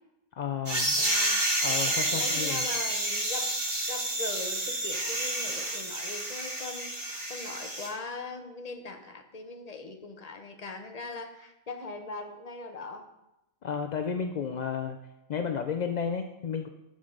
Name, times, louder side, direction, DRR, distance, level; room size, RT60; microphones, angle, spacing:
voice 1, 0.4-1.0 1.6-2.6 13.6-15.0 15.3-16.7, left 6 dB, 65° left, 5 dB, 0.4 m, -32 dB
sound 1, 0.7-7.9, right 1 dB, 40° right, 1.8 m, -29 dB
voice 2, 1.0-3.6 3.9-13.1, left 3 dB, 35° left, 5 dB, 0.9 m, -41 dB
12.0 x 6.5 x 3.8 m, 0.93 s
omnidirectional pair, 1.3 m